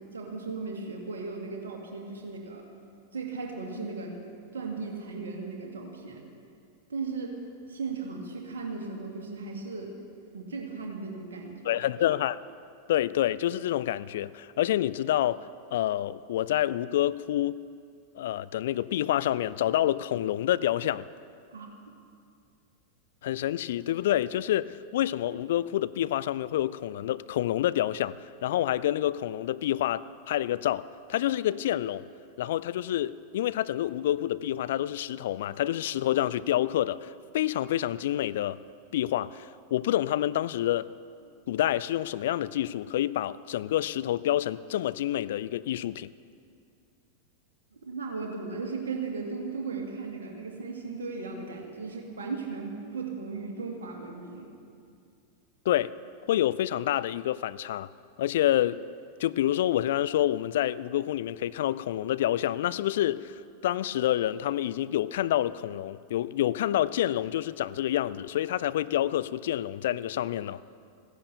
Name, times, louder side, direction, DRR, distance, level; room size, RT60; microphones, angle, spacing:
voice 1, 0.0-2.6 3.1-4.2 4.5-6.2 6.9-7.3 7.7-9.9 10.3-11.8 21.5-21.7 47.7-54.5, right 4 dB, 65° right, 2.2 m, -36 dB
voice 2, 11.6-12.4 12.9-15.4 15.7-17.6 18.2-21.0 23.2-32.1 32.4-38.6 38.9-40.9 41.5-46.1 55.7-56.0 56.3-57.9 58.2-58.8 59.2-70.6, left 12 dB, 55° left, 0.3 m, -28 dB
15.5 x 10.5 x 6.7 m
figure-of-eight pair, 90°, 0 cm